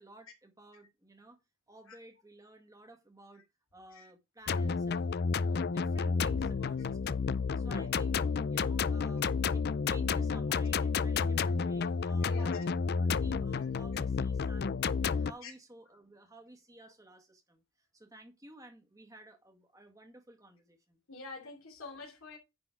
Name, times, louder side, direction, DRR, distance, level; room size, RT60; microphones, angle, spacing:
voice 1, 0.0-1.4 1.7-3.4 3.7-14.7 15.0-21.0, right 1 dB, 15° right, 1.8 m, -55 dB
sound 1, 4.5-15.3, left 5 dB, 45° left, 0.4 m, -31 dB
voice 2, 12.2-12.6 15.4-15.5 21.1-22.4, left 4 dB, 70° left, 3.0 m, -46 dB
9.8 x 4.2 x 4.8 m
head